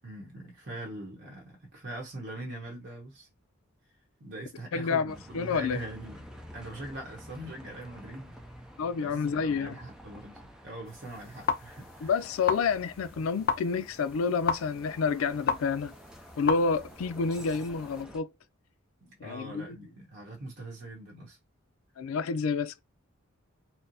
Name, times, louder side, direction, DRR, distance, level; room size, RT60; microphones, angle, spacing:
voice 1, 0.0-3.3 4.2-8.4 8.9-12.1 19.0-21.4, right 1 dB, 55° right, 1.0 m, -42 dB
voice 2, 4.7-5.8 8.8-9.8 12.0-15.9 16.4-18.3 19.2-19.8 22.0-22.8, left 5 dB, 90° left, 0.4 m, -29 dB
Bus, 5.1-18.2, equal, 5° right, 0.5 m, -50 dB
sound 1, 10.8-18.0, left 5 dB, 45° left, 0.6 m, -35 dB
4.2 x 2.0 x 2.6 m
head